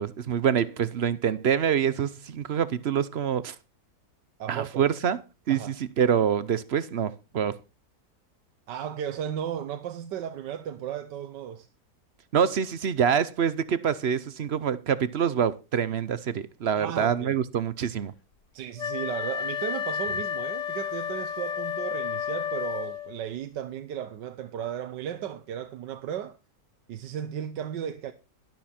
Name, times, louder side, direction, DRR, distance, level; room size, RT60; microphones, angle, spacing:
voice 1, 0.0-3.6 4.5-5.2 5.5-7.6 12.3-18.1, right 8 dB, 50° right, 0.8 m, -26 dB
voice 2, 4.4-4.8 5.5-5.7 8.7-11.7 16.7-17.3 18.5-26.4 26.9-28.1, right 9 dB, 80° right, 1.5 m, -35 dB
Wind instrument woodwind instrument, 18.8-23.2, left 8 dB, 50° left, 1.3 m, -31 dB
12.5 x 12.0 x 4.3 m
omnidirectional pair, 1.9 m